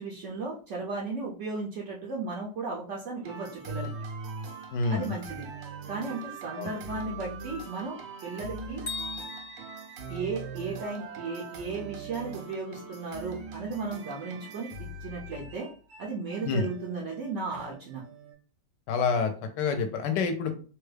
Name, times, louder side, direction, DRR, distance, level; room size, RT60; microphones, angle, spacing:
voice 1, 0.0-3.9 4.9-5.5 5.9-8.8 10.1-15.7 16.0-18.0, right 3 dB, 70° right, -3 dB, 0.7 m, -35 dB
sound 1, 3.2-18.3, right 3 dB, 90° right, 1.4 m, -41 dB
voice 2, 4.7-5.1 6.5-6.7 16.4-16.7 18.9-20.5, left 5 dB, 75° left, 7 dB, 1.2 m, -27 dB
Bell, 8.9-10.9, left 4 dB, 50° left, 1.1 m, -40 dB
3.3 x 2.2 x 3.2 m, 0.40 s
omnidirectional pair, 2.0 m